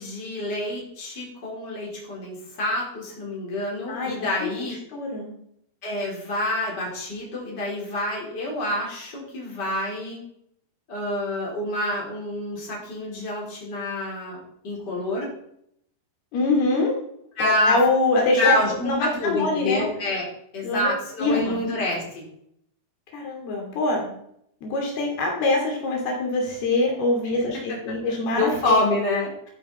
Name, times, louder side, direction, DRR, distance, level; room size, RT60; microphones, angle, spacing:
voice 1, 0.0-4.7 5.8-10.2 10.9-15.3 17.4-17.8 18.4-20.3 20.5-22.3 27.4-27.8 28.1-29.3, left 1 dB, 25° left, -3 dB, 4.7 m, -27 dB
voice 2, 3.9-4.5 4.9-5.3 16.3-17.0 17.4-18.5 18.8-19.9 20.6-21.5 23.1-24.1 24.6-28.9, left 2 dB, 70° left, 0 dB, 4.6 m, -24 dB
12.5 x 10.5 x 4.3 m, 0.72 s
omnidirectional pair, 4.7 m